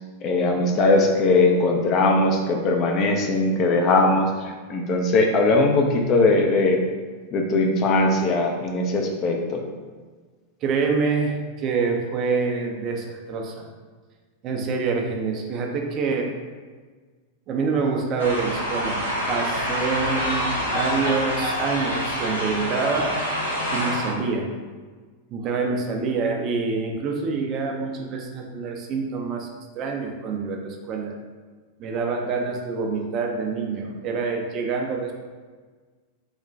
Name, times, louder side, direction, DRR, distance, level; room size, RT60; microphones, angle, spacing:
voice 1, 0.2-6.8 7.3-9.6, left 2 dB, 35° left, 2 dB, 0.4 m, -20 dB
voice 2, 10.6-13.7 14.4-16.3 17.5-23.2 23.7-24.5 25.3-29.5 29.7-31.1 31.8-35.1, right 4 dB, 35° right, 1 dB, 0.4 m, -26 dB
sound 1, 18.2-24.1, equal, 80° left, 0.6 m, -26 dB
3.1 x 2.1 x 2.6 m, 1.4 s
figure-of-eight pair, 90°, 0 cm